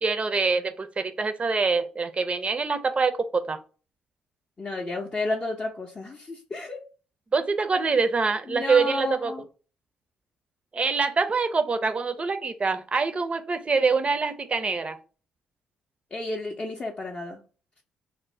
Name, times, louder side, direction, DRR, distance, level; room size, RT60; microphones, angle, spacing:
voice 1, 0.0-3.6 7.3-9.3 10.7-14.9, right 4 dB, 30° right, 9 dB, 0.4 m, -25 dB
voice 2, 4.6-6.8 8.5-9.5 16.1-17.4, left 2 dB, 35° left, 0 dB, 0.5 m, -32 dB
2.5 x 2.0 x 3.0 m, 0.36 s
hypercardioid pair, 45°, 4 cm